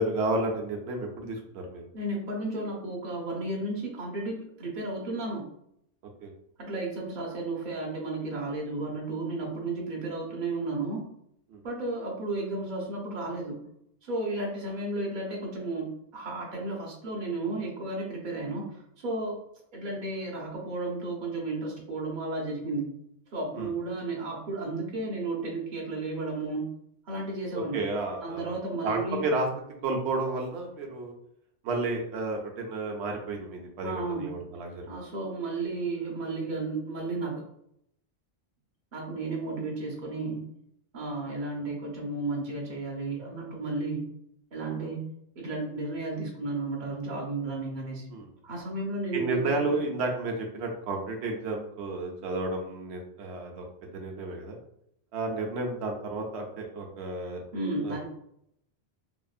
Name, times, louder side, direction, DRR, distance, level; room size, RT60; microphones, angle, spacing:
voice 1, 0.0-1.8 6.2-6.3 11.5-11.6 23.5-23.7 27.5-28.6 28.8-29.5 29.8-31.1 31.6-34.9 48.1-48.3 49.1-54.6 55.1-57.4 57.8-58.1, right 2 dB, 80° right, 1 dB, 0.9 m, -32 dB
voice 2, 1.9-5.4 6.6-11.0 11.6-13.6 14.0-19.4 19.7-22.9 23.3-26.7 27.1-27.8 28.2-29.2 33.8-34.3 34.9-37.4 38.9-40.4 40.9-44.1 44.5-45.0 45.4-48.1 48.4-49.7 57.5-58.1, right 2 dB, 50° right, -2 dB, 0.9 m, -33 dB
2.8 x 2.5 x 2.3 m, 0.75 s
omnidirectional pair, 1.1 m